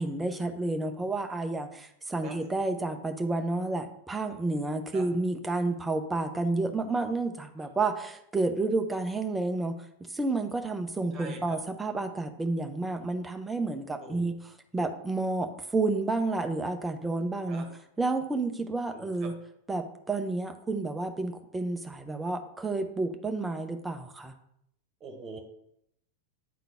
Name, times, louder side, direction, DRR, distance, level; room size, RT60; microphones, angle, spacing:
voice 1, 0.0-9.8 10.1-14.4 14.7-17.6 18.0-19.3 19.7-24.3, right 2 dB, 10° right, 6 dB, 0.7 m, -30 dB
voice 2, 11.1-11.6 14.0-14.3 17.5-17.7 18.9-19.3 25.0-25.4, right 4 dB, 30° right, 3 dB, 1.6 m, -43 dB
9.3 x 3.8 x 3.5 m, 0.75 s
figure-of-eight pair, 90°, 0 cm